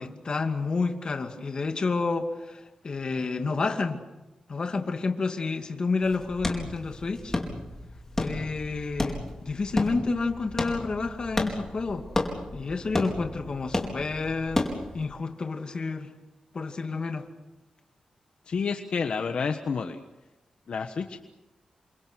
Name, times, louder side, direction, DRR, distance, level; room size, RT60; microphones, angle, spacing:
voice 1, 0.0-4.0 4.5-7.4 8.2-12.0 12.5-16.1 16.5-17.3, left 4 dB, 45° left, 5 dB, 2.4 m, -30 dB
sound 1, 6.0-15.0, left 2 dB, 20° left, 4.6 m, -33 dB
voice 2, 18.5-20.0 20.7-21.2, left 5 dB, 65° left, 6 dB, 1.4 m, -29 dB
29.0 x 26.0 x 6.4 m, 1.0 s
wide cardioid pair, 120°, 2 cm